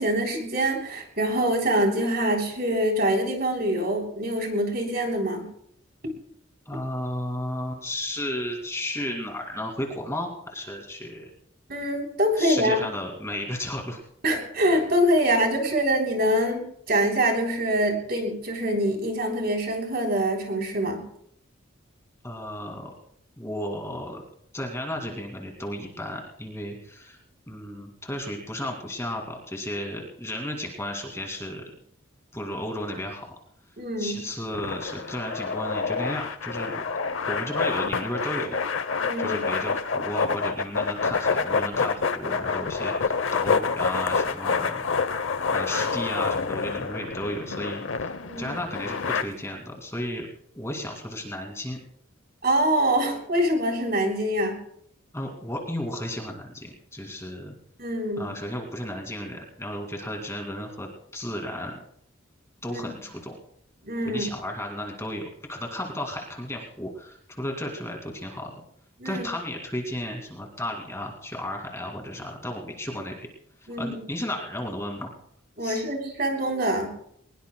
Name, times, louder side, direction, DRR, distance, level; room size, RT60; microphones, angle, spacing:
voice 1, 0.0-5.5 11.7-12.8 14.2-21.0 33.8-34.2 39.0-39.4 48.2-48.5 52.4-54.6 57.8-58.3 62.7-62.8 63.8-64.3 69.0-69.3 73.7-74.0 75.6-76.9, equal, 50° right, 2 dB, 3.6 m, -25 dB
voice 2, 6.7-11.3 12.4-14.0 22.2-22.9 23.4-24.2 24.5-27.2 27.5-31.6 32.3-33.2 34.0-36.8 37.3-38.6 39.2-44.8 45.5-50.3 50.5-51.8 55.1-57.5 58.2-61.8 62.6-63.3 64.0-68.5 69.0-73.2 73.6-75.1 75.6-75.8, left 1 dB, 15° left, 2 dB, 2.4 m, -33 dB
sound 1, 34.5-49.2, left 5 dB, 70° left, 0.8 m, -27 dB
22.5 x 20.5 x 2.3 m, 0.66 s
head